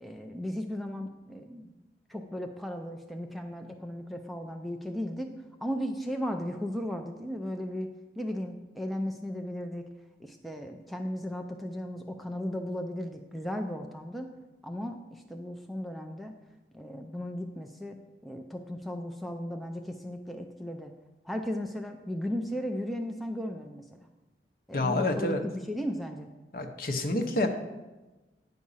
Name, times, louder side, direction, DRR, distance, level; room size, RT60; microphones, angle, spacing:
voice 1, 0.0-1.7 2.1-5.3 5.6-9.9 10.2-14.3 14.6-16.3 16.7-20.9 21.2-23.9 24.7-26.3, equal, ahead, 3 dB, 0.4 m, -36 dB
voice 2, 24.7-25.4 26.5-27.5, left 2 dB, 55° left, 5 dB, 0.8 m, -28 dB
9.5 x 4.9 x 5.5 m, 1.1 s
head